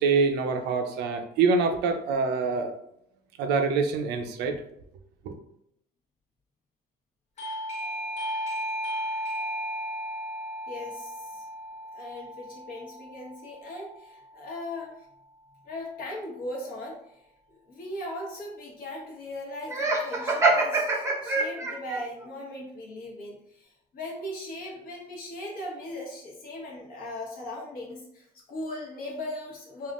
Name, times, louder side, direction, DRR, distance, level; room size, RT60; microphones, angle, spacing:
voice 1, 0.0-2.7 3.4-4.6 5.2-5.4, right 4 dB, 80° right, 6 dB, 0.5 m, -25 dB
Doorbell, 7.4-13.9, equal, 40° left, 0.7 m, -35 dB
voice 2, 10.7-11.4 11.9-14.9 15.7-17.2 17.7-29.9, left 1 dB, 60° left, -2 dB, 1.1 m, -38 dB
Laughter, 19.7-22.0, right 3 dB, 15° right, 0.7 m, -24 dB
3.5 x 2.4 x 2.4 m, 0.73 s
cardioid pair, 110°, 17 cm